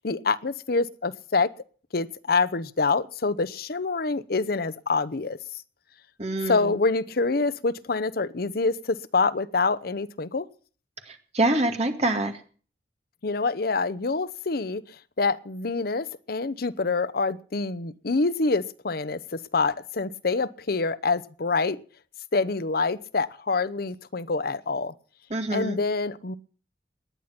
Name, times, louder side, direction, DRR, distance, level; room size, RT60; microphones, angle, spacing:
voice 1, 0.0-1.5 1.9-5.4 6.5-10.5 13.2-14.8 15.2-19.2 19.5-21.8 22.3-24.9 25.5-26.3, left 3 dB, 60° left, 15 dB, 0.8 m, -26 dB
voice 2, 6.2-6.7 11.1-12.3 25.3-25.8, right 2 dB, 40° right, 5 dB, 2.3 m, -26 dB
18.5 x 10.5 x 5.9 m, 0.43 s
head